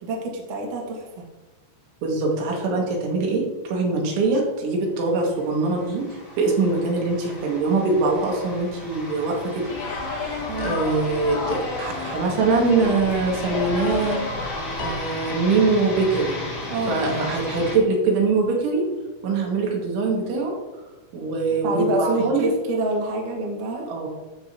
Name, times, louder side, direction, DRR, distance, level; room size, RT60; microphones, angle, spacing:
voice 1, 0.0-1.0 10.5-10.8 16.7-17.0 21.6-23.9, right 2 dB, 60° right, -1 dB, 2.4 m, -26 dB
voice 2, 2.0-6.0 6.4-9.7 10.1-14.4 14.8-16.4 16.9-18.9 19.2-20.5 21.1-22.5 23.9-24.1, right 3 dB, 90° right, -1 dB, 4.2 m, -23 dB
sound 1, 5.2-17.8, left 2 dB, 30° left, 2.2 m, -35 dB
sound 2, 9.6-14.9, left 3 dB, 50° left, 2.8 m, -31 dB
Piano, 14.8-16.3, left 5 dB, 75° left, 3.0 m, -39 dB
12.5 x 7.2 x 2.8 m, 1.2 s
omnidirectional pair, 5.4 m